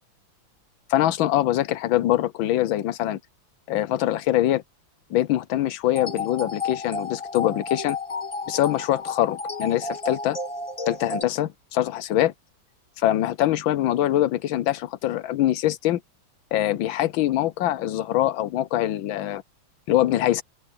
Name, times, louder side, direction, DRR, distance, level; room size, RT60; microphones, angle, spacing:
voice 1, 0.9-3.2 3.7-4.6 5.1-8.0 8.5-10.4 10.9-12.3 13.0-16.0 16.5-19.4 19.9-20.4, left 13 dB, 75° left, 1.5 m, -23 dB
sound 1, 5.9-11.2, left 4 dB, 20° left, 0.9 m, -32 dB
open air
omnidirectional pair, 2.2 m